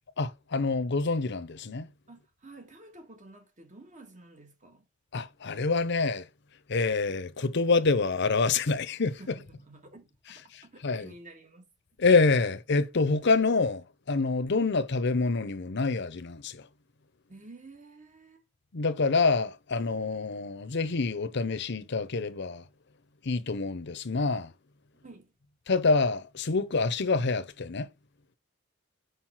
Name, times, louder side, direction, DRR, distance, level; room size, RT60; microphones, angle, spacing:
voice 1, 0.2-1.9 5.1-6.3 6.7-9.2 10.5-11.1 12.0-16.7 18.7-22.6 23.2-24.5 25.7-27.9, left 4 dB, 60° left, 0.8 m, -27 dB
voice 2, 2.1-4.9 9.2-11.7 17.3-18.4 24.9-25.3, right 2 dB, 40° right, 1.7 m, -51 dB
5.7 x 5.4 x 4.5 m
head